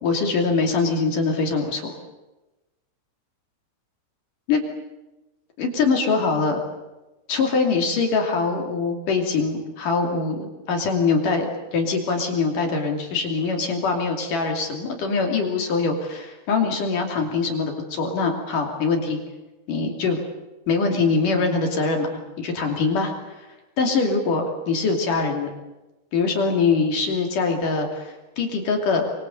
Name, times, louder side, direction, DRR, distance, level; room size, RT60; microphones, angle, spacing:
voice 1, 0.0-1.9 4.5-4.6 5.6-6.6 7.3-19.2 19.7-20.2 20.7-25.5 26.1-29.1, left 4 dB, 50° left, 3 dB, 3.9 m, -23 dB
24.5 x 24.5 x 8.1 m, 1.1 s
omnidirectional pair, 5.5 m